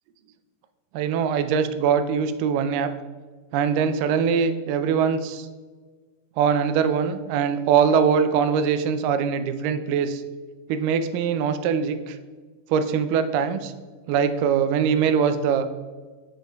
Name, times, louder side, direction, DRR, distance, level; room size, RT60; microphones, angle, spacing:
voice 1, 0.9-2.9 3.5-5.5 6.4-10.2 10.7-12.2 12.7-13.7 14.1-15.7, right 7 dB, 85° right, 10 dB, 2.2 m, -22 dB
7.6 x 7.4 x 2.3 m, 1.4 s
omnidirectional pair, 3.8 m